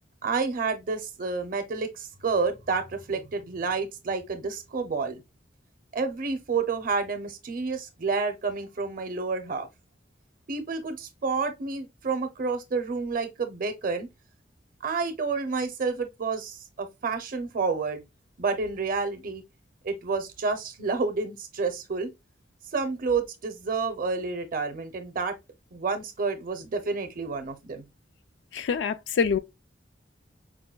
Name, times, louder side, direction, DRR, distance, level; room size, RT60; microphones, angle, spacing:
voice 1, 0.2-5.2 5.9-9.7 10.5-14.1 14.8-18.0 18.4-19.4 19.8-22.1 22.7-25.4 25.7-27.8, right 4 dB, 50° right, 0.6 m, -29 dB
voice 2, 28.5-29.4, left 6 dB, 75° left, 0.3 m, -25 dB
4.7 x 2.2 x 2.2 m
head